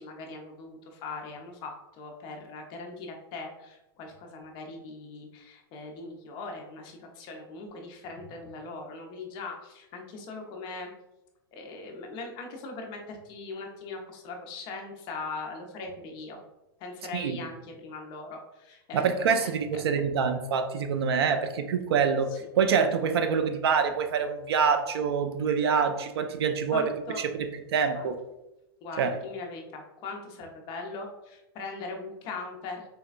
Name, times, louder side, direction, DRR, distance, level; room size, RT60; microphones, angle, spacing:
voice 1, 0.0-10.9 11.5-16.4 16.8-19.6 22.3-22.6 26.7-27.2 27.9-28.1 28.8-32.8, left 3 dB, 35° left, 2 dB, 0.6 m, -40 dB
voice 2, 18.9-26.9 27.2-28.2 29.0-29.1, right 6 dB, 90° right, 8 dB, 0.4 m, -26 dB
4.0 x 2.1 x 2.4 m, 0.94 s
supercardioid pair, 140°, 13 cm